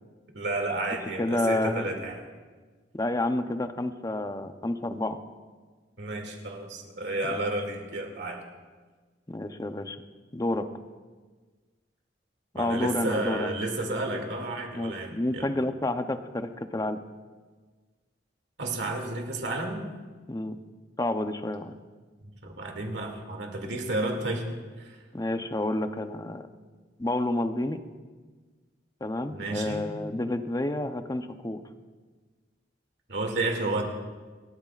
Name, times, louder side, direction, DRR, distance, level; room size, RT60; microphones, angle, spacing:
voice 1, 0.3-2.2 6.0-8.4 12.5-15.5 18.6-19.8 22.4-24.5 24.8-25.0 29.3-29.9 33.1-33.8, right 2 dB, 70° right, 2 dB, 2.4 m, -31 dB
voice 2, 1.2-1.9 2.9-5.2 7.3-7.5 9.3-10.0 10.3-10.7 12.5-13.5 14.7-17.0 20.3-20.6 21.0-21.8 25.1-26.5 27.0-27.8 29.0-31.6, left 1 dB, 20° left, 8 dB, 0.7 m, -29 dB
28.0 x 13.0 x 2.5 m, 1.4 s
head